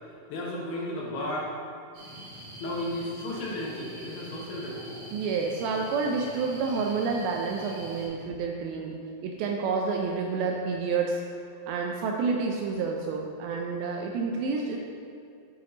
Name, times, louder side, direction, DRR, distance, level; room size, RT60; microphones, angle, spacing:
voice 1, 0.1-1.5 2.6-5.0 8.2-8.3, left 1 dB, 75° left, -3 dB, 2.2 m, -34 dB
sound 1, 1.9-8.1, right 1 dB, 65° right, 3.4 m, -44 dB
voice 2, 5.1-11.2 11.7-14.8, right 4 dB, 90° right, 1 dB, 2.1 m, -29 dB
9.8 x 4.4 x 3.8 m, 2.6 s
omnidirectional pair, 4.8 m